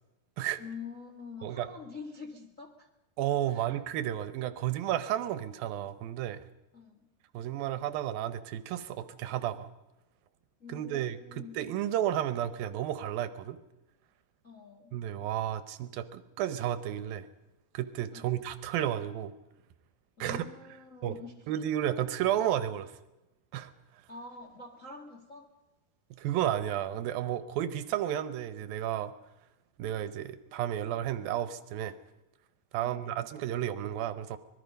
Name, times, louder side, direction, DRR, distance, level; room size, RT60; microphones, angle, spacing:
voice 1, 0.6-2.9 3.5-3.7 6.7-7.1 10.6-11.7 14.4-15.0 18.1-18.5 20.2-21.3 24.1-25.5 32.8-33.1, left 4 dB, 35° left, 2 dB, 1.3 m, -46 dB
voice 2, 3.2-6.4 7.3-9.7 10.7-13.6 14.9-17.3 17.7-19.3 20.2-20.4 21.0-21.2 21.5-23.0 23.5-23.7 26.2-29.1 29.8-32.0 32.7-34.4, right 11 dB, 75° right, 13 dB, 2.6 m, -32 dB
25.5 x 20.5 x 5.3 m, 0.98 s
omnidirectional pair, 4.4 m